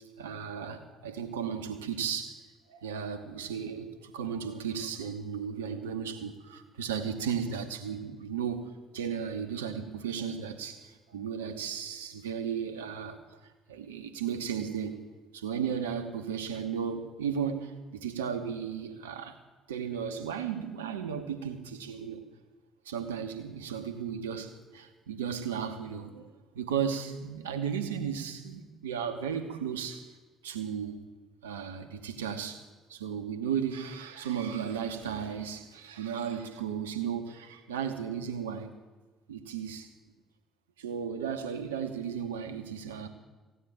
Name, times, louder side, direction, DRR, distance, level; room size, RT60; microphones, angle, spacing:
voice 1, 0.2-2.4 2.7-13.4 13.7-15.0 15.3-19.4 19.7-22.2 22.8-26.3 26.5-30.1 30.4-31.0 31.4-38.8 39.3-39.9 40.8-43.1, right 7 dB, 80° right, 7 dB, 1.2 m, -35 dB
15.5 x 9.3 x 8.8 m, 1.3 s
figure-of-eight pair, 50°, 0 cm